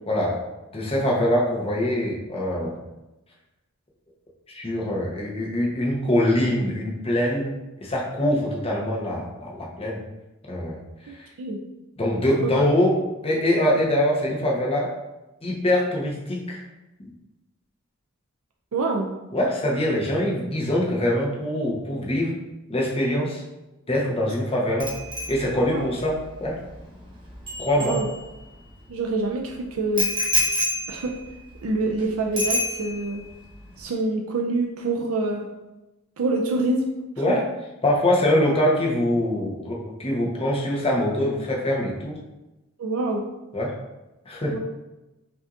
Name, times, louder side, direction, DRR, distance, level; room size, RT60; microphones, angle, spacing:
voice 1, 0.1-0.4 0.7-2.7 4.5-10.0 10.5-10.8 11.2-11.3 12.0-15.0 15.4-16.6 19.3-22.4 22.7-23.4 23.9-24.9 25.3-26.6 27.6-28.0 37.2-37.4 37.8-42.2 43.5-43.8 44.3-44.6, left 1 dB, 30° left, -3 dB, 0.9 m, -23 dB
voice 2, 11.1-11.6 12.4-12.5 18.7-19.1 25.6-25.8 27.8-28.1 28.9-30.1 30.9-31.1 31.6-33.2 33.8-35.5 36.2-36.9 42.8-43.2 44.5-44.6, right 2 dB, 80° right, 1 dB, 0.5 m, -26 dB
Bicycle bell, 24.8-28.6 30.0-32.0 32.4-33.2 33.5-33.8, left 1 dB, 25° right, 1.0 m, -29 dB
5.5 x 2.7 x 2.5 m, 0.99 s
head